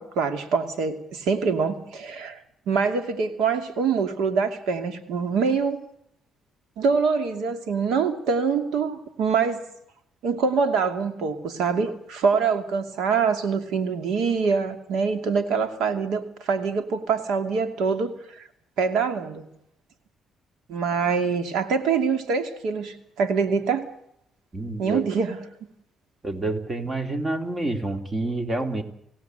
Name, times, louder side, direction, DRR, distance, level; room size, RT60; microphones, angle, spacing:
voice 1, 0.0-2.4 2.7-5.8 6.8-9.6 10.2-18.4 18.8-19.4 20.7-23.9 24.8-25.4, right 5 dB, 85° right, 8 dB, 2.5 m, -24 dB
voice 2, 24.5-25.1 26.2-28.8, right 2 dB, 30° right, 6 dB, 3.3 m, -28 dB
29.0 x 16.5 x 8.0 m, 0.76 s
cardioid pair, 90°, 0 cm